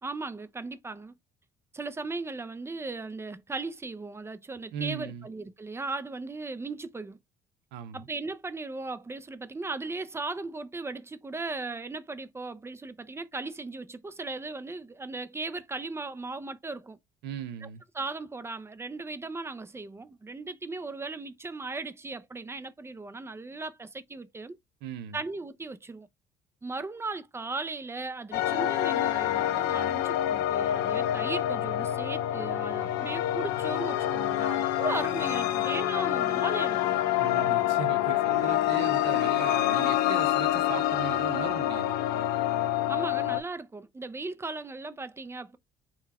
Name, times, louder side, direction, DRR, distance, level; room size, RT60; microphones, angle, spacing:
voice 1, 0.0-1.1 1.7-7.2 7.9-17.0 17.6-17.7 17.9-24.6 25.1-26.1 26.6-37.0 42.9-45.6, right 3 dB, 15° right, 0.5 m, -37 dB
voice 2, 4.7-5.3 7.7-8.1 17.2-17.8 24.8-25.2 37.2-42.0, right 8 dB, 85° right, 0.8 m, -38 dB
sound 1, 28.3-43.4, left 13 dB, 90° left, 0.5 m, -27 dB
3.8 x 2.3 x 4.2 m
cardioid pair, 110°, 17 cm